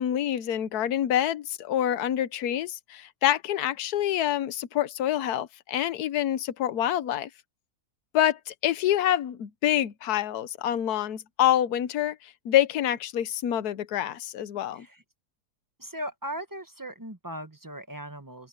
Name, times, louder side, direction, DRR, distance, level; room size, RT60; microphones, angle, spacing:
voice 1, 0.0-7.3 8.1-14.9, left 11 dB, 75° left, 1.4 m, -26 dB
voice 2, 15.8-18.5, equal, 15° right, 1.1 m, -38 dB
omnidirectional pair, 1.7 m